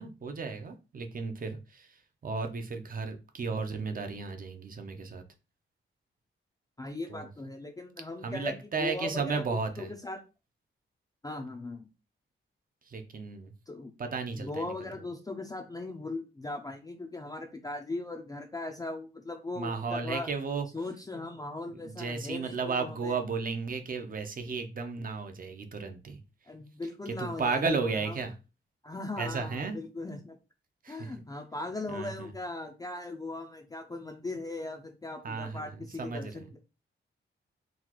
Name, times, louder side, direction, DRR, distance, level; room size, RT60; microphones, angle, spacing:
voice 1, 0.0-5.2 7.1-7.3 8.2-9.9 12.8-13.5 14.0-14.9 19.6-20.7 21.8-26.2 27.1-28.3 29.2-29.8 30.8-31.1 31.9-32.3 35.2-35.7 36.0-36.5, right 4 dB, 45° right, 7 dB, 0.6 m, -34 dB
voice 2, 6.8-10.2 11.2-11.9 13.7-13.9 14.4-20.3 20.7-23.2 26.5-28.2 28.8-30.3 30.9-36.6, left 2 dB, 20° left, 2 dB, 0.4 m, -39 dB
3.9 x 2.4 x 2.9 m, 0.31 s
wide cardioid pair, 130°, 21 cm